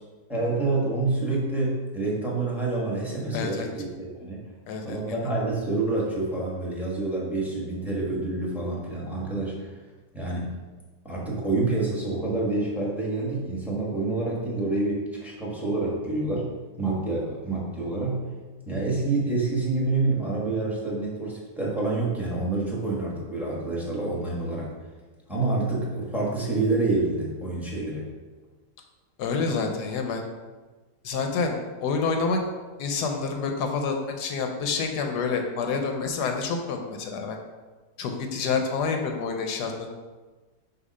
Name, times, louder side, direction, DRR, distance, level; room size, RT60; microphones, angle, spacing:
voice 1, 0.3-4.5 4.8-9.7 10.1-10.5 11.0-16.5 16.8-18.2 18.7-24.7 25.3-28.1, right 2 dB, ahead, -5 dB, 1.1 m, -27 dB
voice 2, 3.3-3.7 4.7-5.2 29.2-30.2 31.0-32.4 32.8-37.4 38.0-40.0, left 4 dB, 75° left, 4 dB, 1.2 m, -28 dB
6.6 x 2.7 x 5.3 m, 1.3 s
omnidirectional pair, 1.9 m